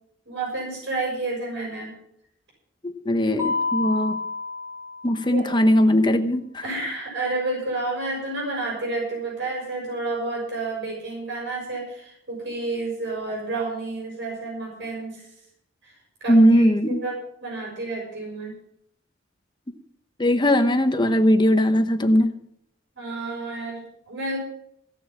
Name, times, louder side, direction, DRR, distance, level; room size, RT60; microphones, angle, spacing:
voice 1, 0.3-1.9 5.3-5.4 6.6-15.2 15.8-15.9 16.2-18.5 22.9-24.4, right 2 dB, 65° right, -2 dB, 6.3 m, -30 dB
voice 2, 2.8-4.2 5.0-6.6 16.3-17.0 20.2-22.3, equal, 25° left, 7 dB, 1.0 m, -19 dB
Mallet percussion, 3.4-5.5, left 3 dB, 15° right, 3.5 m, -29 dB
16.5 x 7.0 x 7.2 m, 0.72 s
head